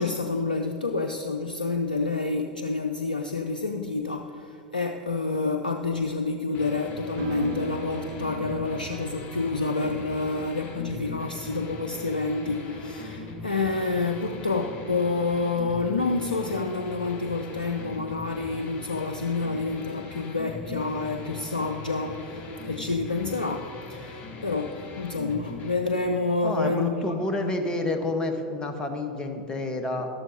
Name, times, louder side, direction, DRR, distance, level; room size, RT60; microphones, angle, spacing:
voice 1, 0.0-27.5, left 3 dB, 85° left, 4 dB, 0.5 m, -28 dB
sound 1, 6.5-25.8, left 2 dB, 35° left, 1.3 m, -40 dB
sound 2, 7.2-12.3, right 11 dB, 60° right, 0.4 m, -41 dB
voice 2, 26.4-30.1, left 2 dB, 20° left, 5 dB, 1.2 m, -29 dB
12.5 x 12.0 x 2.8 m, 2.7 s
figure-of-eight pair, 85°, 5 cm